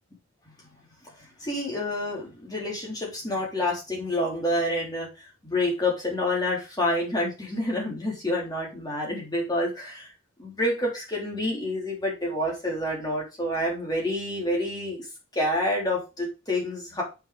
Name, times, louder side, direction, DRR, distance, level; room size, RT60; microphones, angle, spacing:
voice 1, 1.4-10.1 10.4-15.1 15.3-17.0, left 1 dB, 20° left, -3 dB, 3.5 m, -28 dB
7.1 x 6.0 x 5.1 m, 0.28 s
head